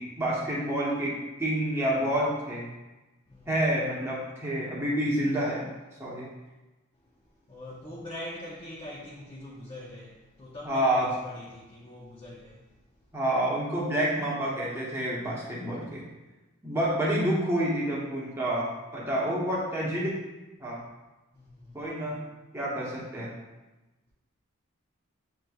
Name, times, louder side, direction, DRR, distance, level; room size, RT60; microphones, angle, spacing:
voice 1, 0.0-2.7 3.5-5.6 6.0-6.3 10.6-11.1 13.1-16.0 16.6-20.2 20.6-20.8 21.7-22.2 22.5-23.3, right 1 dB, 10° right, -6 dB, 0.8 m, -28 dB
voice 2, 7.5-12.7 21.3-21.9, left 1 dB, 25° left, -4 dB, 0.5 m, -43 dB
7.5 x 3.1 x 2.3 m, 1.1 s
head